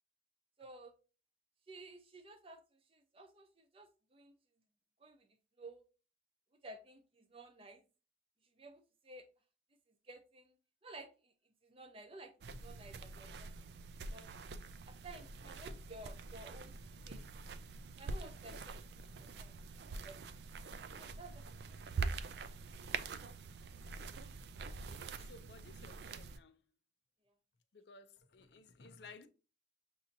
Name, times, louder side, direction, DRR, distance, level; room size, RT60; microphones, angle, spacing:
voice 1, 0.6-0.9 1.7-4.3 5.0-5.3 5.6-5.8 6.6-7.8 8.6-9.3 10.0-10.6 10.8-11.3 11.6-12.3 12.6-13.7 14.1-14.3 14.9-16.7 17.0-17.2 18.0-18.8 19.2-19.6 20.0-20.2 20.9-21.8 27.3-27.4, right 2 dB, 30° right, 0.6 m, -54 dB
sound 1, 12.4-26.4, right 4 dB, 70° right, 0.4 m, -45 dB
voice 2, 24.9-26.6 27.7-29.3, left 4 dB, 75° left, 0.5 m, -57 dB
6.9 x 2.7 x 2.7 m
head